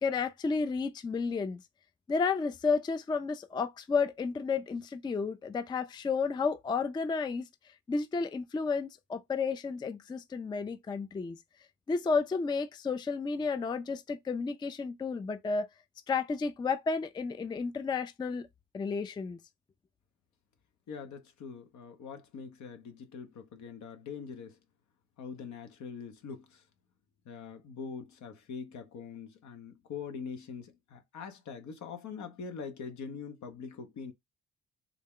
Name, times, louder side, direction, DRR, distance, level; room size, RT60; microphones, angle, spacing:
voice 1, 0.0-1.6 2.1-7.5 7.9-11.4 11.9-15.7 16.1-18.5 18.7-19.4, left 4 dB, 15° left, 0.3 m, -32 dB
voice 2, 20.9-24.6 25.2-26.6 27.2-34.1, left 6 dB, 70° left, 0.9 m, -43 dB
3.7 x 2.2 x 3.6 m
cardioid pair, 90°, 30 cm